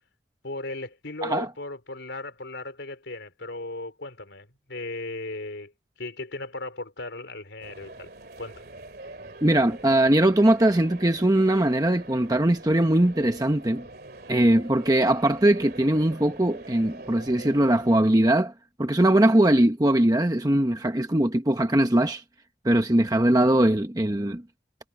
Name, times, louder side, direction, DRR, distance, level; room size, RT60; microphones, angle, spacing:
voice 1, 0.4-5.7 6.0-8.1 8.4-8.6, left 2 dB, 85° left, 3.7 m, -36 dB
sound 1, 7.6-18.0, right 2 dB, 60° right, 2.5 m, -44 dB
voice 2, 9.4-13.9 14.3-18.5 18.8-22.2 22.6-24.4, right 1 dB, 20° right, 1.0 m, -21 dB
head